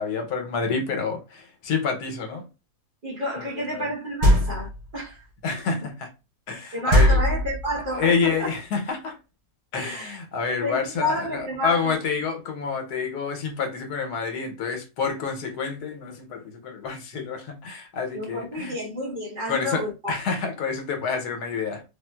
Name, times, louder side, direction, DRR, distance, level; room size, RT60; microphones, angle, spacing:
voice 1, 0.0-2.4 3.4-3.8 5.4-6.1 6.5-7.2 7.9-9.2 9.7-18.7 19.5-21.8, left 5 dB, 80° left, 1.3 m, -28 dB
voice 2, 3.0-5.2 5.8-5.9 6.7-8.5 9.8-10.2 10.6-12.0 18.1-20.1, equal, 40° right, 0.9 m, -30 dB
sound 1, 4.2-4.9 6.9-7.9, equal, 90° right, 1.4 m, -19 dB
3.5 x 2.4 x 2.2 m
omnidirectional pair, 1.7 m